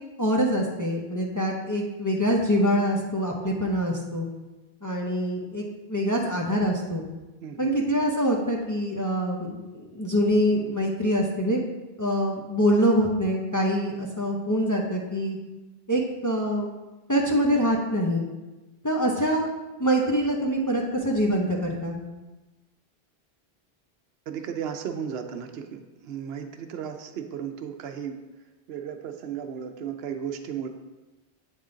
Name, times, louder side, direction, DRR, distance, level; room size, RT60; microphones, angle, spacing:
voice 1, 0.2-4.3 4.8-5.6 5.9-7.1 7.6-11.6 12.0-15.4 15.9-16.7 17.1-18.3 18.8-19.5 19.8-22.0, equal, 25° left, -1 dB, 0.5 m, -25 dB
voice 2, 7.4-7.7 24.3-28.2 28.7-30.7, right 8 dB, 75° right, 6 dB, 0.8 m, -35 dB
7.9 x 3.7 x 3.8 m, 1.1 s
omnidirectional pair, 1.1 m